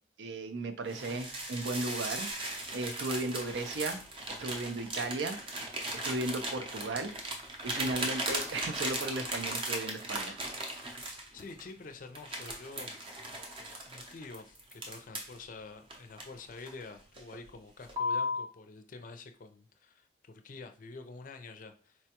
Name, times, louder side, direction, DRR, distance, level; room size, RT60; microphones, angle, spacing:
voice 1, 0.2-2.3 2.7-4.0 4.4-5.4 6.0-7.1 7.6-10.4, right 2 dB, 75° right, 8 dB, 0.5 m, -35 dB
sound 1, 0.9-11.7 12.1-15.4 15.9-16.8 17.2-17.4 17.9-18.5, equal, 30° right, 0.6 m, -37 dB
voice 2, 11.3-13.0 13.9-22.0, left 3 dB, 45° left, 6 dB, 0.4 m, -48 dB
4.2 x 2.2 x 2.8 m, 0.39 s
head